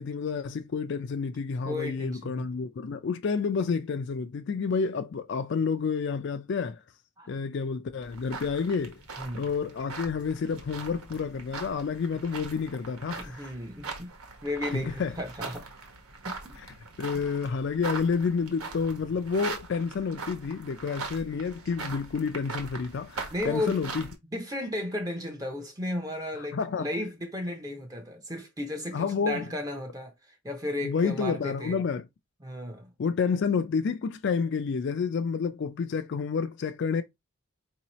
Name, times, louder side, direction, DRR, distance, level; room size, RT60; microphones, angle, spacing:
voice 1, 0.0-6.8 7.3-9.0 9.3-13.5 14.7-15.1 17.0-24.1 26.4-26.9 28.9-29.5 30.8-32.1 33.0-37.0, left 5 dB, 50° left, 0.3 m, -29 dB
voice 2, 1.6-2.5 7.2-7.3 9.2-9.5 13.2-14.1 14.4-15.7 16.4-16.6 23.3-23.8 24.3-31.8 32.4-32.9, left 1 dB, 15° right, 0.6 m, -34 dB
sound 1, 8.0-24.1, right 4 dB, 85° right, 1.2 m, -41 dB
4.7 x 2.8 x 3.0 m
head